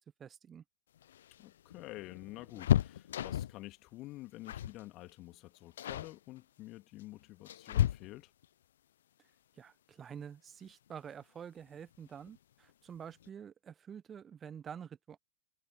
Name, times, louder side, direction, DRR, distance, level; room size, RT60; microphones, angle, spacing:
voice 1, 0.2-0.6 9.6-15.2, right 8 dB, 20° right, 1.2 m, -48 dB
sound 1, 1.0-3.7 4.5-4.8 5.1-5.4 5.8-6.2 7.0-8.5 10.2-10.3 10.7-10.8 11.9-12.4 12.7-12.8 13.1-13.3, left 11 dB, 60° left, 0.8 m, -33 dB
voice 2, 1.4-8.3, left 18 dB, 40° left, 2.4 m, -49 dB
figure-of-eight pair, 90°, 0 cm